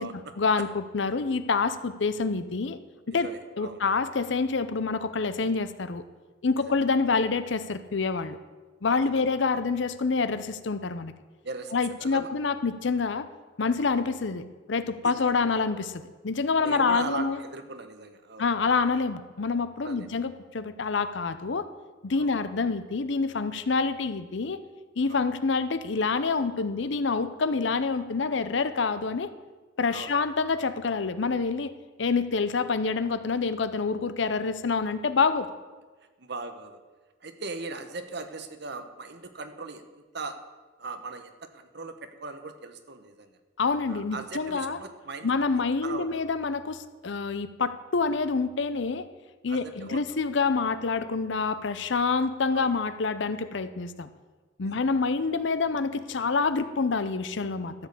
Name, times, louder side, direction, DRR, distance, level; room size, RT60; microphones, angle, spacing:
voice 1, 0.0-2.8 3.1-3.3 3.6-6.0 6.4-8.4 8.8-11.1 11.7-13.3 13.6-17.4 18.4-21.7 22.0-24.6 25.0-29.3 29.8-31.7 32.0-35.5 43.6-44.8 45.2-49.1 49.4-54.1 54.6-57.7, left 4 dB, 65° left, 12 dB, 0.6 m, -27 dB
voice 2, 3.1-3.8 6.6-6.8 8.9-9.6 11.4-12.3 15.0-15.5 16.5-18.5 19.8-20.1 22.2-22.3 25.1-25.3 29.9-30.1 36.2-36.8 37.2-40.4 40.8-43.4 43.9-46.2 49.5-50.2 52.5-52.7 54.6-54.8, right 3 dB, 60° right, 8 dB, 1.0 m, -39 dB
13.5 x 5.4 x 8.2 m, 1.3 s
head